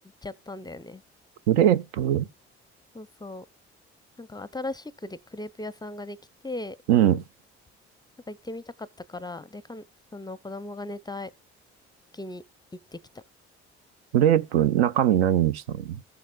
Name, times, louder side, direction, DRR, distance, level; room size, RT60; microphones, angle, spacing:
voice 1, 0.2-1.0 2.9-3.5 4.2-6.2 6.4-6.8 8.3-9.8 10.1-11.3 12.1-12.4 12.9-13.2, left 2 dB, 10° left, 0.5 m, -37 dB
voice 2, 1.5-2.3 6.9-7.2 14.1-16.0, right 11 dB, 75° right, 0.6 m, -21 dB
15.5 x 7.3 x 2.2 m
figure-of-eight pair, 50°, 33 cm